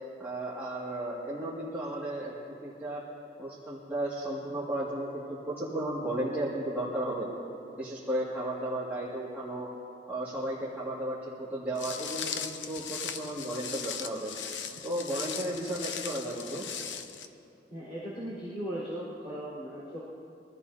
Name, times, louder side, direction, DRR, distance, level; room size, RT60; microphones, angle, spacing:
voice 1, 0.2-2.3 2.6-3.0 3.4-7.3 7.8-9.7 10.1-14.3 14.8-16.6, right 1 dB, 10° right, -9 dB, 2.1 m, -34 dB
Walk footsteps, 11.8-17.3, left 7 dB, 90° left, 0.8 m, -38 dB
voice 2, 17.7-20.0, equal, 35° left, -10 dB, 4.3 m, -38 dB
24.5 x 14.5 x 2.8 m, 2.7 s
head